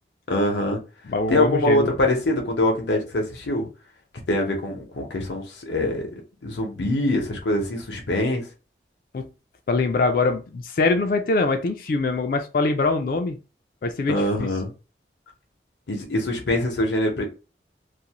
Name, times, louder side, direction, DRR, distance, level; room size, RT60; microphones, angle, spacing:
voice 1, 0.3-0.8 1.3-3.7 4.3-6.1 6.4-8.5 14.1-14.7 15.9-17.2, left 1 dB, 85° left, 0.7 m, -24 dB
voice 2, 1.1-1.9 9.1-9.3 9.7-13.4 13.8-14.5, left 3 dB, 50° left, 0.3 m, -23 dB
2.5 x 2.0 x 2.8 m
head